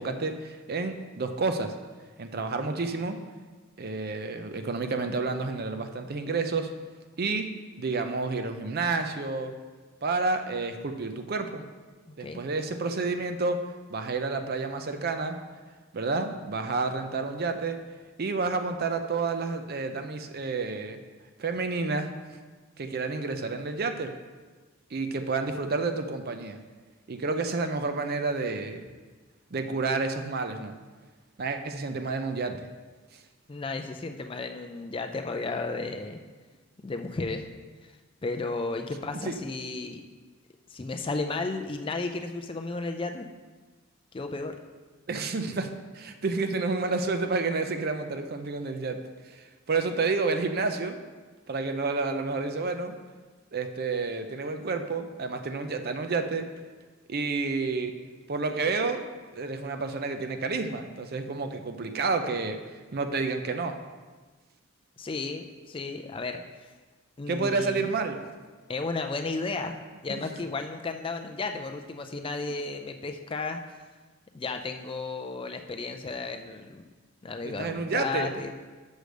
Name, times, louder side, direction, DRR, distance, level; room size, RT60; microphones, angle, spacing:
voice 1, 0.0-1.7 2.2-3.2 3.8-6.7 7.2-7.5 7.8-9.5 10.0-11.6 12.2-13.6 13.9-15.4 15.9-17.8 18.2-21.0 21.4-22.1 22.8-24.1 24.9-26.6 27.1-28.8 29.5-30.8 31.4-32.7 39.1-39.4 45.1-49.0 49.3-51.0 51.5-53.0 53.5-56.5 57.1-57.9 58.3-59.0 59.3-62.6 62.9-63.8 67.3-68.2 70.1-70.2 77.4-78.3, right 3 dB, 45° right, 7 dB, 0.5 m, -30 dB
voice 2, 12.1-12.4 33.5-36.2 36.8-37.5 38.2-40.0 40.7-43.3 44.1-44.5 65.0-66.4 67.2-67.9 68.7-69.8 70.0-73.6 74.3-76.8 77.2-78.5, left 3 dB, 25° left, 5 dB, 0.4 m, -33 dB
6.4 x 5.0 x 6.4 m, 1.4 s
head